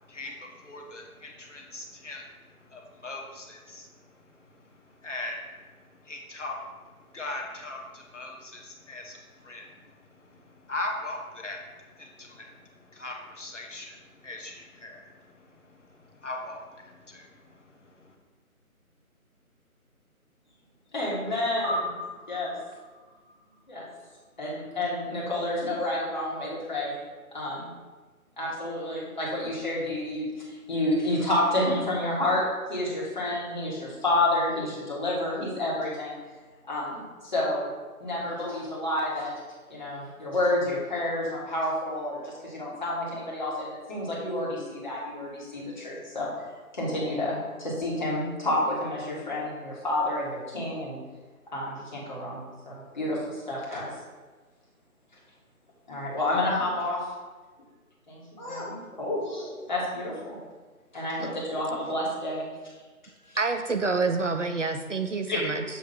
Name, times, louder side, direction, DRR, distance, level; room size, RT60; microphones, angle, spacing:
voice 1, 0.1-4.5 5.0-18.1, left 2 dB, 55° left, 1 dB, 1.0 m, -40 dB
voice 2, 20.9-22.0 22.3-22.6 23.7-23.8 24.4-26.9 27.3-27.7 28.4-32.4 32.7-36.1 36.7-37.7 38.0-39.3 39.7-46.3 46.7-51.0 51.5-53.9 55.9-57.1 58.1-60.4 60.9-62.5 63.2-63.4 65.3-65.4, left 1 dB, 30° left, -5 dB, 1.9 m, -29 dB
sound 1, 21.6-24.4, equal, 40° right, 1.9 m, -37 dB
voice 3, 63.4-65.6, right 4 dB, 55° right, 7 dB, 0.6 m, -27 dB
7.2 x 3.1 x 5.6 m, 1.3 s
figure-of-eight pair, 155°, 44 cm